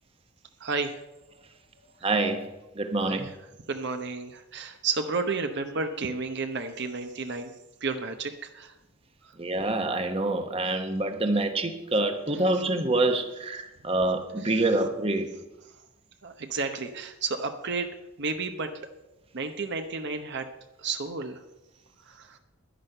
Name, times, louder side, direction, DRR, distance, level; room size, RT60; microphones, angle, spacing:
voice 1, 0.6-1.0 3.0-3.3 3.7-7.5 7.8-8.7 9.2-9.4 14.4-14.7 16.2-17.9 18.2-18.7 19.3-20.5 20.8-21.4 22.0-22.4, right 4 dB, 55° right, 6 dB, 1.0 m, -32 dB
voice 2, 2.0-2.4 2.7-3.3 9.4-15.3, right 2 dB, 30° right, 6 dB, 1.1 m, -26 dB
11.0 x 10.5 x 6.7 m, 0.97 s
head